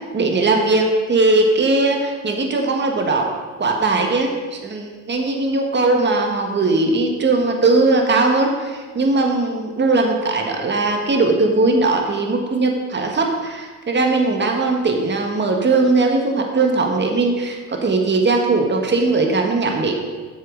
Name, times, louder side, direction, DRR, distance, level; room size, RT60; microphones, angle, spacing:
voice 1, 0.1-3.3 3.6-19.9, right 3 dB, 35° right, 3 dB, 1.6 m, -19 dB
8.3 x 7.4 x 5.3 m, 1.4 s
cardioid pair, 90°, 30 cm